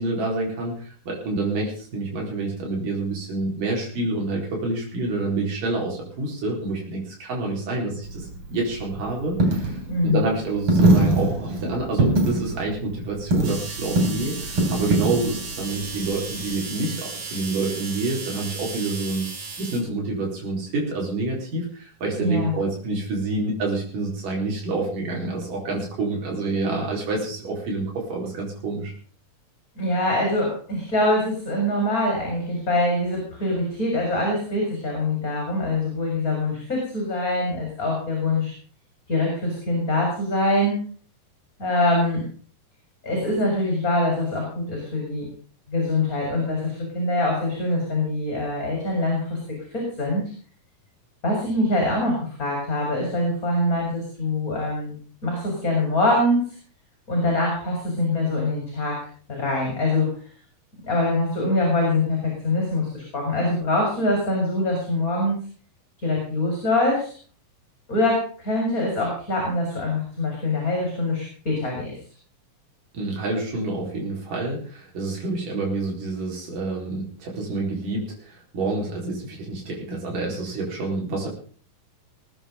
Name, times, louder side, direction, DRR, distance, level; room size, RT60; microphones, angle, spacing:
voice 1, 0.0-19.3 19.6-28.9 72.9-81.3, right 2 dB, 70° right, -2 dB, 6.0 m, -28 dB
Coin (dropping), 8.0-16.6, right 2 dB, 40° right, 4.1 m, -23 dB
voice 2, 9.9-10.3 22.2-22.5 29.8-38.5 39.1-40.8 41.6-42.2 43.0-45.3 45.7-50.3 51.2-55.0 55.2-56.6 57.1-59.0 59.3-60.1 60.8-65.4 66.0-67.1 67.9-72.0, left 2 dB, 25° left, 0 dB, 5.4 m, -24 dB
sound 1, 13.4-19.8, right 4 dB, 85° right, 5.3 m, -35 dB
20.5 x 9.9 x 5.3 m, 0.43 s
omnidirectional pair, 3.9 m